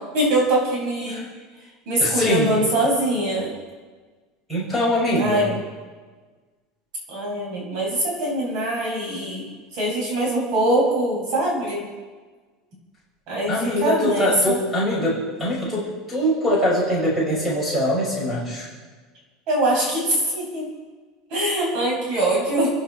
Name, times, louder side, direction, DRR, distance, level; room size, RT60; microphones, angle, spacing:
voice 1, 0.1-1.3 1.9-3.5 5.1-5.5 7.1-11.9 13.3-14.6 19.5-20.7 21.3-22.7, right 1 dB, 45° right, -2 dB, 6.3 m, -23 dB
voice 2, 2.0-2.6 4.5-5.5 13.5-18.7, equal, 5° right, -6 dB, 6.3 m, -23 dB
29.5 x 11.0 x 4.3 m, 1.4 s
cardioid pair, 170°, 0 cm